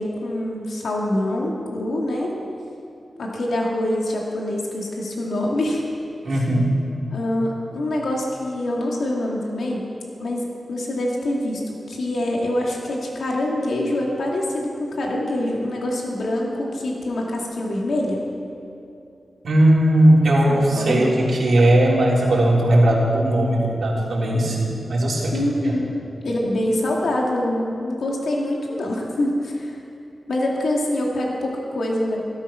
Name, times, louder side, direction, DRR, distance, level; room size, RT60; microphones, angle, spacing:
voice 1, 0.0-2.4 3.2-5.8 7.1-9.8 10.2-18.2 20.5-21.1 25.3-29.8 30.3-32.2, left 1 dB, 80° left, -2 dB, 2.5 m, -25 dB
voice 2, 6.2-6.7 19.4-25.7, right 1 dB, 70° right, -4 dB, 3.6 m, -18 dB
15.5 x 13.5 x 5.9 m, 2.8 s
wide cardioid pair, 95°, 0 cm